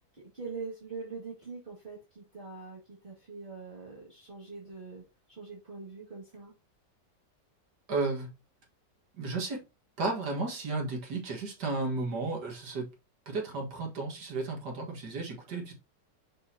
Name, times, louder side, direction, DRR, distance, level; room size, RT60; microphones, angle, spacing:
voice 1, 0.1-5.0 5.3-6.5, right 4 dB, 30° right, 2.4 m, -43 dB
voice 2, 7.9-8.3 9.1-9.6 10.0-12.9 13.3-15.7, right 3 dB, 70° right, 2.3 m, -33 dB
6.5 x 6.0 x 2.9 m
omnidirectional pair, 1.9 m